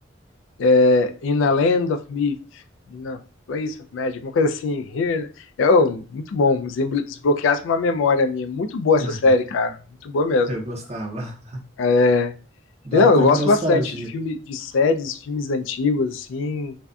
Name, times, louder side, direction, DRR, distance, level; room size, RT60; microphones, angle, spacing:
voice 1, 0.6-2.3 2.9-3.2 3.5-5.3 5.6-9.8 10.0-10.5 11.8-12.3 12.9-16.7, left 3 dB, 75° left, 8 dB, 0.3 m, -20 dB
voice 2, 10.5-11.6 12.8-14.1, right 1 dB, 35° right, 2 dB, 0.6 m, -28 dB
2.5 x 2.2 x 2.2 m, 0.36 s
head